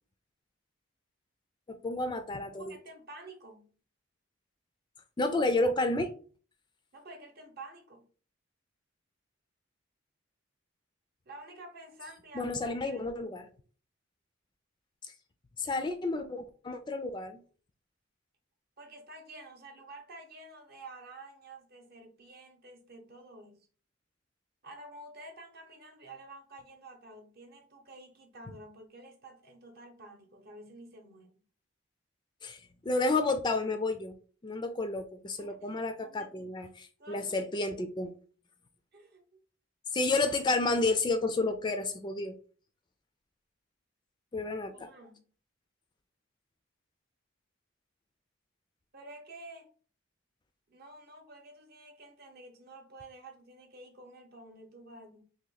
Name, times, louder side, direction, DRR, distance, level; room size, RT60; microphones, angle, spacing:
voice 1, 1.7-2.8 5.2-6.1 12.3-13.4 15.0-15.1 15.6-17.4 32.4-34.1 34.4-38.1 39.9-42.4 44.3-44.7, left 2 dB, 20° left, 0.3 m, -31 dB
voice 2, 2.5-3.7 6.9-8.1 11.3-13.4 18.8-23.6 24.6-31.4 35.4-35.7 36.0-36.5 37.0-37.5 38.9-39.3 44.7-45.3 48.9-49.7 50.7-55.2, right 2 dB, 50° right, 0.8 m, -50 dB
2.9 x 2.8 x 3.9 m
head